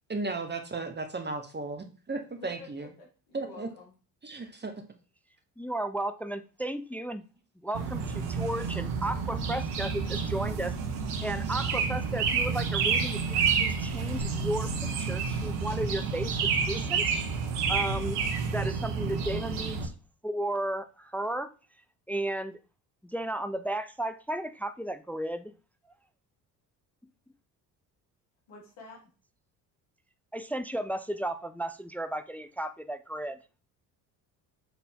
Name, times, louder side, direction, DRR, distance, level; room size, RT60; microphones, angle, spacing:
voice 1, 0.1-2.9 3.3-3.7 4.2-4.7, right 3 dB, 20° right, 6 dB, 1.2 m, -35 dB
voice 2, 2.4-2.7 3.0-3.9 28.5-29.0, left 4 dB, 70° left, -2 dB, 3.3 m, -48 dB
voice 3, 5.6-7.2 7.6-10.8 11.2-16.4 16.7-17.1 17.7-18.2 18.5-19.9 20.2-21.5 22.1-22.6 23.0-25.5 30.3-33.4, right 1 dB, 5° left, 10 dB, 0.4 m, -34 dB
sound 1, 7.7-19.9, right 5 dB, 75° right, 1.1 m, -29 dB
7.3 x 4.0 x 3.6 m, 0.35 s
hypercardioid pair, 55°, 48 cm